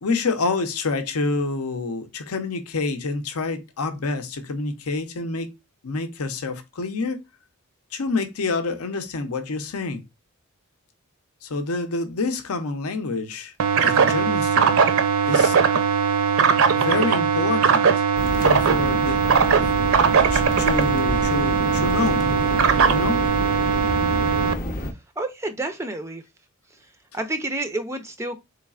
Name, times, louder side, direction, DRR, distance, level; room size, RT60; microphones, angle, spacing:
voice 1, 0.0-5.6 5.8-7.2 7.9-10.0 11.4-13.5 13.8-14.8 15.2-15.6 16.7-18.0 18.4-19.3 19.6-20.0 20.3-22.3 22.9-23.2, left 3 dB, 75° left, 0.6 m, -27 dB
sound 1, 13.6-24.5, right 6 dB, 65° right, 0.5 m, -20 dB
sound 2, 18.2-24.9, left 1 dB, 40° left, 0.7 m, -29 dB
voice 2, 25.2-26.2 27.1-28.4, right 2 dB, 10° right, 0.4 m, -29 dB
4.0 x 3.2 x 2.3 m
head